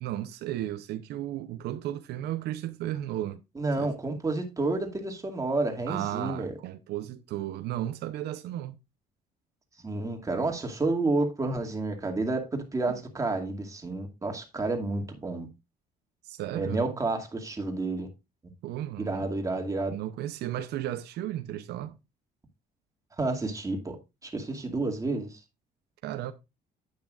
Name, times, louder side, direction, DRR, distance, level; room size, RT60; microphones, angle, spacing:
voice 1, 0.0-3.4 3.8-3.9 5.9-8.7 16.2-16.8 18.6-19.3 19.9-22.0 26.0-26.3, right 13 dB, 80° right, 0.7 m, -34 dB
voice 2, 3.6-6.5 9.8-15.5 16.5-18.1 19.0-19.9 23.2-24.0 24.2-25.4, right 2 dB, 20° right, 2.3 m, -30 dB
10.5 x 8.7 x 2.5 m
cardioid pair, 110°, 17 cm